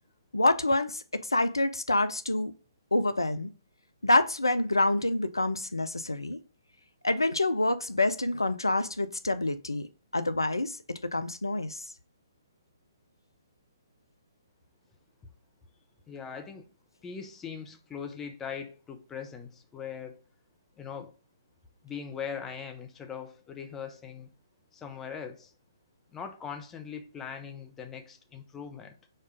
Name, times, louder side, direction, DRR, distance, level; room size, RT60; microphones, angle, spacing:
voice 1, 0.3-2.5 2.9-3.5 4.0-6.4 7.0-9.8 10.1-11.8, left 2 dB, 85° left, 0.4 m, -27 dB
voice 2, 16.1-16.7 17.0-20.2 20.8-21.1 21.8-24.3 24.7-25.5 26.1-28.9, left 7 dB, 15° left, 0.6 m, -40 dB
4.3 x 2.4 x 4.7 m
figure-of-eight pair, 130°, 2 cm